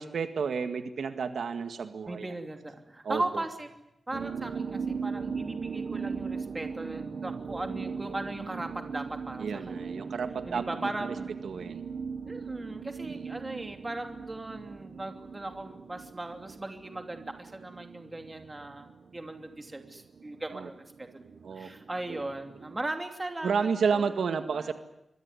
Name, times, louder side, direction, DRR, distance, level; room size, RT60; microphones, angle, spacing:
voice 1, 0.0-2.3 3.0-3.4 9.4-11.1 11.4-11.9 13.1-13.3 20.5-20.7 21.4-21.7 22.1-22.2 22.6-22.7 23.4-24.7, right 5 dB, 70° right, 8 dB, 1.9 m, -31 dB
voice 2, 2.1-3.7 4.1-10.1 10.5-11.3 12.2-21.3 21.5-24.0 24.5-24.7, right 2 dB, 15° right, 5 dB, 2.8 m, -38 dB
sound 1, 4.1-22.9, right 5 dB, 55° right, 1.1 m, -39 dB
25.5 x 22.5 x 9.8 m, 0.86 s
wide cardioid pair, 165°, 0 cm